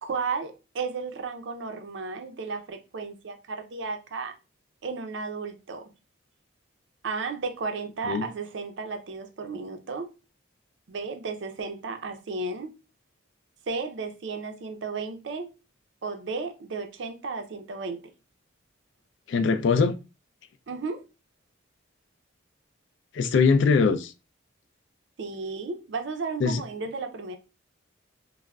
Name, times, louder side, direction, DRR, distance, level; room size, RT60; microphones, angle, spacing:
voice 1, 0.0-4.3 4.8-5.9 7.0-10.1 10.9-12.7 13.7-15.5 16.0-18.0 20.7-21.0 25.2-27.4, right 4 dB, 60° right, 0.4 m, -34 dB
voice 2, 19.3-20.0 23.1-24.1 26.4-26.6, left 5 dB, 65° left, 0.3 m, -21 dB
3.4 x 2.0 x 2.2 m
head